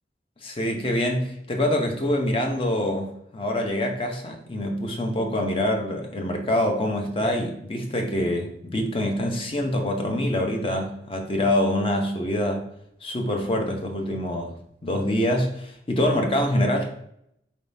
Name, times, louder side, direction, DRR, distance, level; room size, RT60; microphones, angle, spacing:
voice 1, 0.4-12.6 13.0-14.5 14.8-17.0, left 1 dB, 30° left, 3 dB, 0.6 m, -25 dB
4.0 x 3.6 x 2.6 m, 0.75 s
head